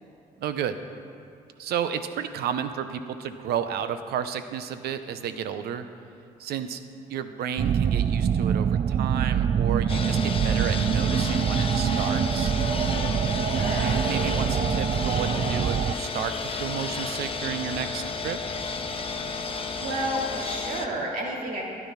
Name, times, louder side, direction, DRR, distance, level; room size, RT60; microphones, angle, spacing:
voice 1, 0.4-0.8 1.6-5.9 6.4-6.8 7.1-12.5 13.7-18.4, right 8 dB, 75° right, 10 dB, 0.8 m, -32 dB
sound 1, 7.6-15.9, right 8 dB, 40° right, 0.3 m, -25 dB
sound 2, 9.9-20.9, left 4 dB, 35° left, 1.0 m, -32 dB
voice 2, 13.5-13.9 19.8-21.6, right 1 dB, 55° right, -2 dB, 3.0 m, -30 dB
12.0 x 9.6 x 5.8 m, 2.5 s
cardioid pair, 80°, 17 cm